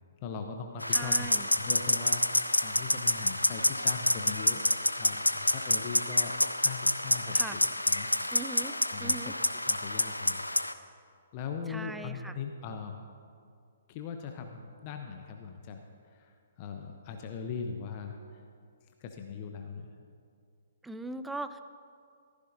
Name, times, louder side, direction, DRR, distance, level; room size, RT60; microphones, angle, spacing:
voice 1, 0.2-4.7 5.0-6.3 6.6-7.6 7.9-9.3 9.7-10.4 11.3-13.0 13.9-15.8 16.1-16.3 16.6-18.2 19.0-19.9, left 6 dB, 35° left, 4 dB, 0.8 m, -40 dB
sound 1, 0.8-10.7, left 1 dB, 85° left, 0.5 m, -28 dB
voice 2, 0.9-1.5 7.3-7.6 8.3-8.7 9.0-9.3 11.7-12.4 20.8-21.6, right 3 dB, 5° right, 10 dB, 0.4 m, -39 dB
15.0 x 14.5 x 2.7 m, 2.2 s
figure-of-eight pair, 125°, 0 cm